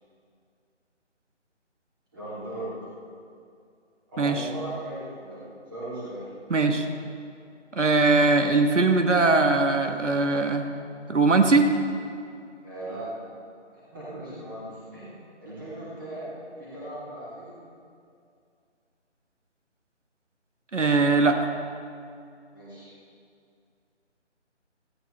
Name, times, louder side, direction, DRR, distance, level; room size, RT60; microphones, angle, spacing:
voice 1, 2.1-2.9 4.1-6.2 12.6-13.1 13.7-15.1 15.4-17.5 22.5-22.9, right 1 dB, 15° right, -10 dB, 2.5 m, -38 dB
voice 2, 6.5-6.8 7.7-10.7 11.1-11.7 20.7-21.5, right 3 dB, 80° right, 5 dB, 1.4 m, -21 dB
16.5 x 15.0 x 3.2 m, 2.4 s
figure-of-eight pair, 170°, 36 cm